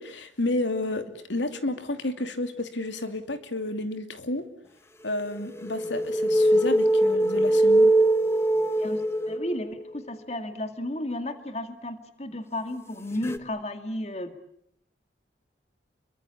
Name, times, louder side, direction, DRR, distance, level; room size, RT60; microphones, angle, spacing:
voice 1, 0.0-4.5 5.0-7.9, left 2 dB, 85° left, 8 dB, 2.8 m, -31 dB
sound 1, 5.3-10.0 13.2-13.4, right 1 dB, 15° left, 1.1 m, -22 dB
voice 2, 8.8-14.3, left 1 dB, 35° left, 8 dB, 2.1 m, -33 dB
28.5 x 23.5 x 8.6 m, 0.73 s
head